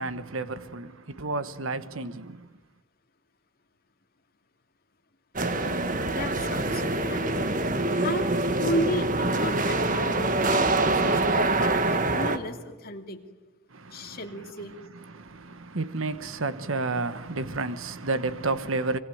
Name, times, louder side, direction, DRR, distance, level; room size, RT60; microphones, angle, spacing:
voice 1, 0.0-2.5 13.7-14.2 15.1-19.0, right 3 dB, 70° right, 1.2 m, -31 dB
sound 1, 5.4-12.4, right 2 dB, 35° right, 1.6 m, -25 dB
voice 2, 6.1-7.5 8.0-8.3 8.6-13.2 13.9-14.8, left 1 dB, 45° left, 2.7 m, -34 dB
25.5 x 24.5 x 9.4 m
head